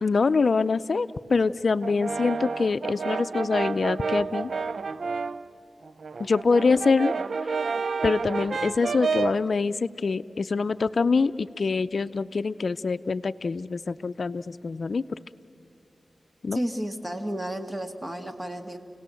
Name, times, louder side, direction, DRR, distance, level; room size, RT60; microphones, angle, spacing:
voice 1, 0.0-4.5 6.2-7.1 8.0-15.0 16.4-16.6, left 4 dB, 65° left, 13 dB, 0.5 m, -25 dB
Brass instrument, 1.8-5.5 5.8-9.5, right 5 dB, 70° right, 0.5 m, -30 dB
voice 2, 16.5-18.8, right 1 dB, 20° right, 7 dB, 2.1 m, -32 dB
29.5 x 18.0 x 7.8 m, 2.8 s
cardioid pair, 45°, 0 cm